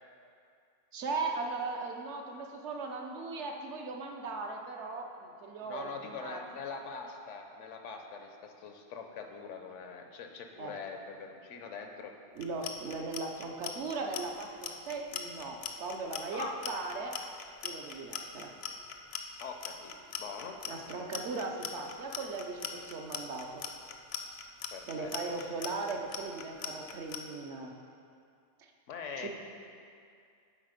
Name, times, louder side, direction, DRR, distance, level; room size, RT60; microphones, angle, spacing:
voice 1, 0.9-6.4 10.6-10.8 12.3-17.2 17.6-18.5 20.7-23.7 24.9-27.7 28.6-28.7 29.2-29.3, right 3 dB, 70° right, 2 dB, 1.0 m, -38 dB
voice 2, 5.6-12.1 16.3-16.6 19.4-19.9 20.2-20.6 24.7-25.4 28.9-29.3, left 5 dB, 80° left, 4 dB, 1.0 m, -43 dB
Clock, 12.4-27.2, left 8 dB, 65° left, 0.8 m, -40 dB
8.8 x 4.1 x 5.1 m, 2.4 s
omnidirectional pair, 1.2 m